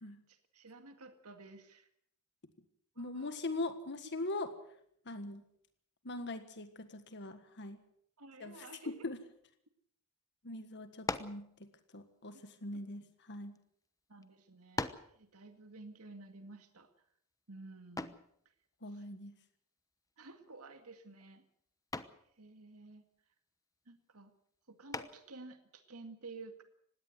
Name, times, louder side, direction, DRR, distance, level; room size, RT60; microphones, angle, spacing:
voice 1, 0.3-1.9 3.0-3.3 8.2-8.9 12.3-12.4 14.1-16.9 17.5-18.2 18.9-19.2 20.2-21.4 22.4-23.0 23.9-24.3 24.7-26.6, right 3 dB, 80° right, 7 dB, 2.0 m, -52 dB
voice 2, 3.0-4.5 5.0-5.4 6.0-7.8 8.4-9.2 10.4-11.5 11.9-13.5 18.8-19.3, left 2 dB, 55° left, 9 dB, 1.6 m, -41 dB
sound 1, 11.0-11.5 12.4-13.6 14.2-14.3 14.8-15.2 18.0-18.3 20.2-20.6 21.0-21.3 21.9-22.3 24.9-25.4, left 3 dB, 15° left, 1.0 m, -40 dB
20.0 x 17.0 x 8.0 m, 0.68 s
head